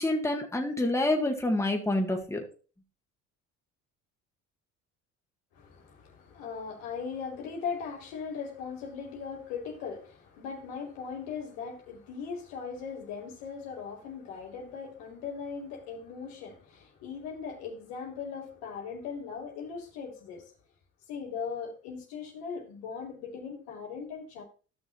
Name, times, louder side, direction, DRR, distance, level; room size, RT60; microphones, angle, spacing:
voice 1, 0.0-2.4, left 1 dB, 10° left, 1.9 m, -27 dB
voice 2, 5.5-20.5 21.1-24.4, left 6 dB, 80° left, 2.8 m, -39 dB
15.0 x 6.1 x 2.6 m
supercardioid pair, 65°, 37 cm